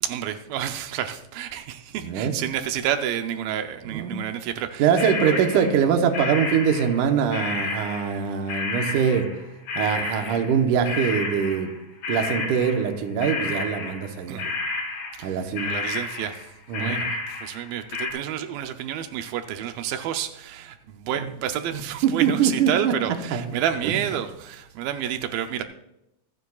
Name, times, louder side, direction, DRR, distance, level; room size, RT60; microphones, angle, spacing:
voice 1, 0.0-5.4 14.3-14.5 15.2-16.5 16.8-25.6, right 10 dB, 85° right, 7 dB, 2.5 m, -30 dB
voice 2, 2.0-2.3 3.9-4.2 4.8-9.3 9.8-11.7 12.1-14.5 15.2-15.7 16.7-17.0 22.0-22.9 23.3-23.4, right 7 dB, 70° right, 5 dB, 2.4 m, -23 dB
sound 1, 4.9-11.8 12.0-14.1 14.4-15.3 15.6-18.1, left 3 dB, 50° left, 5.5 m, -31 dB
25.5 x 9.5 x 2.4 m, 0.85 s
omnidirectional pair, 4.1 m